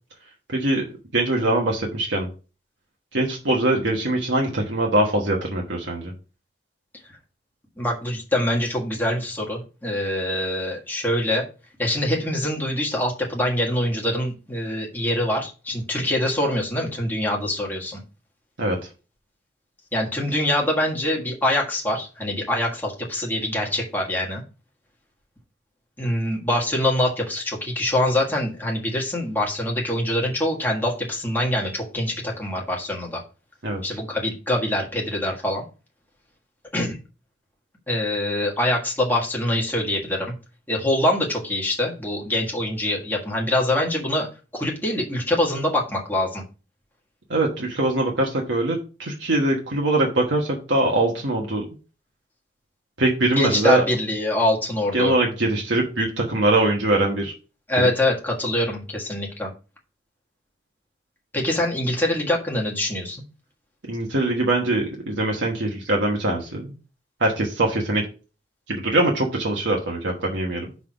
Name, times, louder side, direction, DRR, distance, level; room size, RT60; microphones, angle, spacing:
voice 1, 0.5-0.8 1.1-2.3 3.1-6.1 18.6-18.8 33.6-33.8 47.3-51.6 53.0-53.8 54.9-57.3 57.8-57.9 63.9-66.7 67.2-68.0 68.7-70.7, right 2 dB, 75° right, -1 dB, 1.3 m, -22 dB
voice 2, 7.8-11.4 11.8-18.0 19.9-24.4 26.0-33.2 33.8-35.6 36.7-37.0 37.9-40.3 40.7-44.3 44.5-46.4 53.3-55.1 57.7-59.5 61.3-63.2, left 1 dB, 10° left, -1 dB, 1.6 m, -24 dB
6.0 x 3.8 x 5.8 m, 0.34 s
head